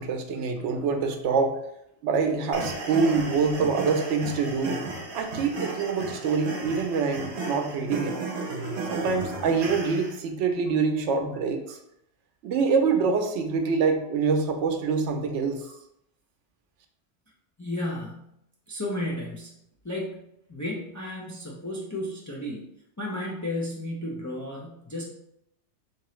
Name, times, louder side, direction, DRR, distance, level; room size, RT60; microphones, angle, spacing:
voice 1, 0.0-1.6 2.0-4.8 5.1-8.2 8.9-11.8 12.4-15.7, right 5 dB, 90° right, 6 dB, 0.9 m, -25 dB
sound 1, 2.5-10.1, right 3 dB, 60° right, 1.0 m, -34 dB
voice 2, 17.6-18.3 18.7-19.6 19.8-20.2 20.5-22.6 23.0-25.1, left 1 dB, 30° left, -3 dB, 0.3 m, -33 dB
3.7 x 2.9 x 3.1 m, 0.79 s
omnidirectional pair, 1.2 m